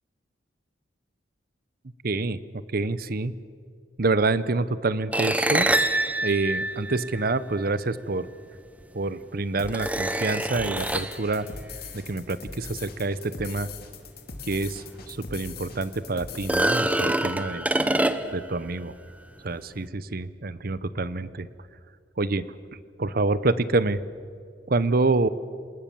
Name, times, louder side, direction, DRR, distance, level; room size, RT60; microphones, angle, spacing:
voice 1, 2.0-2.4 2.7-3.3 4.0-5.7 6.2-8.3 8.9-11.5 11.9-13.7 14.5-17.6 18.3-18.9 19.4-21.5 22.2-22.4 23.0-24.0 24.7-25.3, right 3 dB, 50° right, 16 dB, 0.8 m, -27 dB
sound 1, 5.1-7.6 8.8-8.9 9.7-11.2 14.5-14.6 15.0-15.1 16.3-18.5, right 1 dB, 10° right, 0.8 m, -25 dB
sound 2, 9.6-17.0, left 4 dB, 55° left, 2.5 m, -41 dB
27.0 x 19.5 x 7.1 m, 2.2 s
head